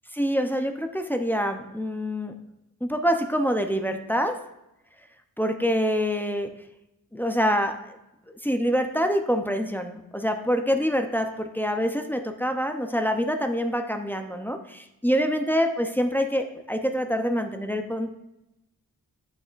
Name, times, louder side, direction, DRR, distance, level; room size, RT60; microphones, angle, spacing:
voice 1, 0.1-2.3 2.8-4.4 5.4-6.5 7.1-8.0 8.4-18.1, equal, 5° left, 5 dB, 0.6 m, -26 dB
8.7 x 6.8 x 2.5 m, 0.89 s
cardioid pair, 75°, 35 cm